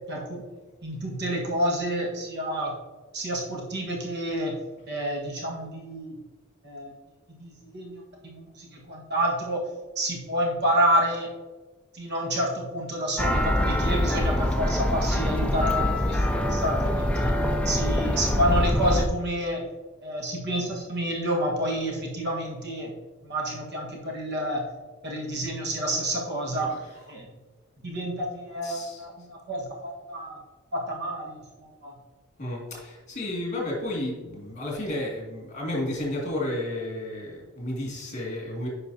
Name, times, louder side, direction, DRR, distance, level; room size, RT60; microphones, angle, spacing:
voice 1, 0.1-0.4 0.8-2.7 3.1-4.6 4.9-6.2 6.6-6.9 7.4-9.6 9.9-11.3 11.9-17.3 17.6-19.6 20.0-22.9 23.2-24.6 25.0-26.7 27.1-27.3 27.8-30.4 30.7-31.9, right 1 dB, 50° right, -1 dB, 1.5 m, -29 dB
sound 1, 13.2-19.1, left 1 dB, 5° left, 0.4 m, -24 dB
voice 2, 26.6-27.0 28.6-29.1 32.4-38.7, left 1 dB, 35° left, -3 dB, 2.3 m, -32 dB
9.7 x 5.3 x 2.8 m, 1.2 s
head